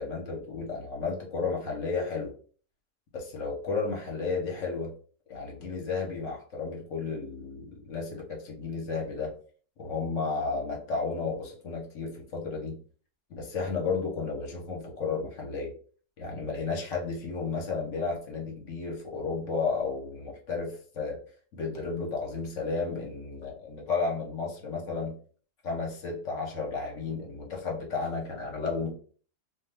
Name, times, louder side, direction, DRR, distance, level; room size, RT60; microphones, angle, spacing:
voice 1, 0.0-2.3 3.1-4.9 5.3-9.3 9.8-12.8 13.3-15.7 16.2-21.2 21.5-25.1 25.6-28.9, left 4 dB, 55° left, -1 dB, 1.1 m, -33 dB
2.6 x 2.3 x 3.3 m, 0.43 s
omnidirectional pair, 1.7 m